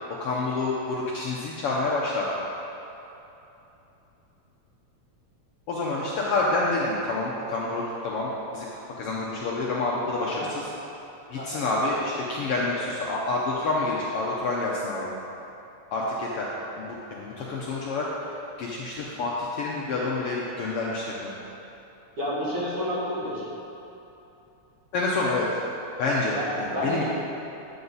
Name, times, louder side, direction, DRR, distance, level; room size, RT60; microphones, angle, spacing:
voice 1, 0.2-2.3 5.7-8.7 9.0-10.6 11.3-15.1 15.9-16.5 16.8-18.0 18.6-21.3 24.9-25.5 26.0-27.1, left 2 dB, 70° left, -4 dB, 1.5 m, -28 dB
voice 2, 10.1-10.5 11.4-11.6 22.2-23.4 26.3-27.1, equal, 45° right, -9 dB, 3.0 m, -30 dB
9.9 x 7.9 x 4.0 m, 3.0 s
omnidirectional pair, 3.3 m